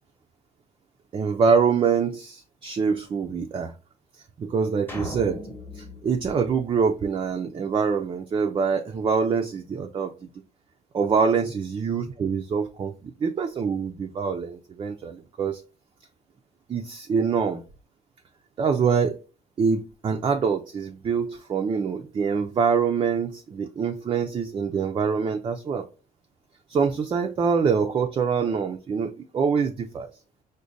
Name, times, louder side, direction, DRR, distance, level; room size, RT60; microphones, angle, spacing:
voice 1, 1.1-3.7 4.4-5.4 5.8-10.3 10.9-15.6 16.7-17.6 18.6-19.2 19.6-25.8 26.7-30.1, right 6 dB, 30° right, 4 dB, 0.4 m, -25 dB
sound 1, 4.9-7.4, left 1 dB, 10° left, 0.8 m, -39 dB
4.9 x 2.2 x 2.5 m, 0.34 s
cardioid pair, 110°, 17 cm